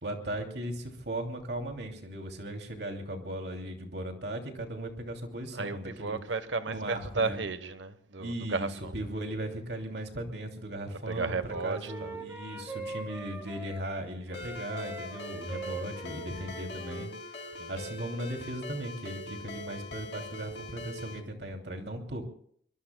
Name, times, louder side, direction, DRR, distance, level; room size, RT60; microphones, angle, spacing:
voice 1, 0.0-6.2 6.7-7.4 8.2-22.2, right 1 dB, 65° right, 2.8 m, -37 dB
voice 2, 5.5-8.9 11.1-12.2 15.5-15.8 17.6-17.7, right 4 dB, 85° right, 1.2 m, -34 dB
Wind instrument woodwind instrument, 11.1-14.0 14.3-17.8, right 1 dB, 15° right, 3.2 m, -43 dB
Ringtone, 14.3-21.2, left 2 dB, 65° left, 3.0 m, -42 dB
24.0 x 23.0 x 2.3 m
head